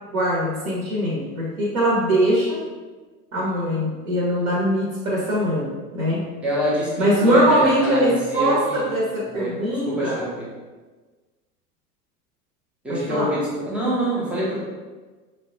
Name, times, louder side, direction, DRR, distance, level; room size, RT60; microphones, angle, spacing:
voice 1, 0.1-2.6 3.3-6.2 7.0-10.2 12.9-13.3, right 1 dB, 60° right, -4 dB, 1.0 m, -22 dB
voice 2, 6.4-8.8 9.3-9.5 9.8-10.3 12.8-14.6, equal, 5° right, -7 dB, 0.4 m, -25 dB
4.9 x 2.1 x 2.6 m, 1.3 s
figure-of-eight pair, 85°, 48 cm